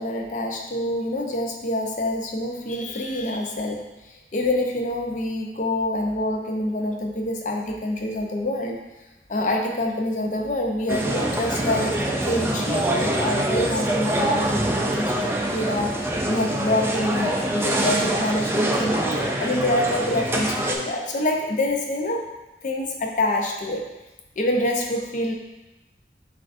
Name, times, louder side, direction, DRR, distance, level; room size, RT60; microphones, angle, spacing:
voice 1, 0.0-3.9 4.3-8.8 9.3-15.9 16.2-19.0 19.4-22.3 22.6-23.9 24.4-25.3, left 1 dB, 45° left, 2 dB, 0.5 m, -26 dB
sound 1, 10.9-20.8, right 1 dB, 15° right, 0.3 m, -24 dB
7.4 x 2.5 x 2.5 m, 1.0 s
head